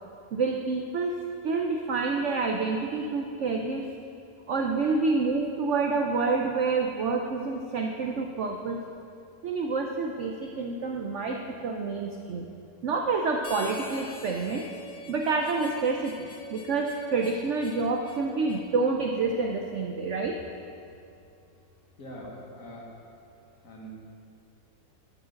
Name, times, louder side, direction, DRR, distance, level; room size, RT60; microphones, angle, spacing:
voice 1, 0.3-1.1 1.4-3.9 4.5-8.8 9.4-12.5 12.8-14.6 15.1-20.4, right 4 dB, 75° right, 2 dB, 0.6 m, -28 dB
Harmonica, 13.4-18.7, left 2 dB, 90° left, 1.8 m, -44 dB
voice 2, 22.0-22.9 23.6-23.9, equal, 50° left, -3 dB, 1.9 m, -42 dB
11.0 x 4.8 x 6.3 m, 2.5 s
omnidirectional pair, 1.9 m